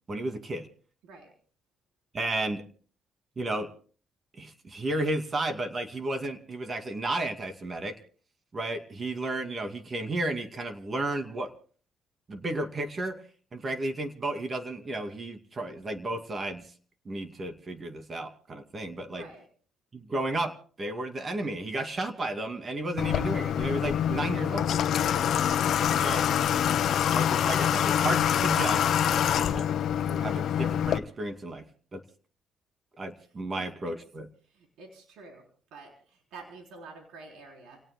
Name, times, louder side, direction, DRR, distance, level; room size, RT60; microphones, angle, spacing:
voice 1, 0.1-0.7 2.1-2.6 3.4-3.7 4.4-8.0 8.5-11.5 12.3-13.2 13.5-16.6 17.1-19.2 19.9-24.7 26.0-26.3 27.1-28.9 29.4-29.8 30.0-31.6 31.9-32.0 33.0-34.3, right 2 dB, 35° right, 6 dB, 2.4 m, -33 dB
voice 2, 19.1-19.5 25.1-25.4 33.5-34.0 34.4-35.4 35.7-37.8, right 3 dB, 90° right, 1 dB, 3.8 m, -48 dB
Water / Water tap faucet, 23.0-31.0, left 9 dB, 70° left, 1.0 m, -25 dB
30.0 x 18.0 x 2.2 m, 0.42 s
cardioid pair, 90°, 0 cm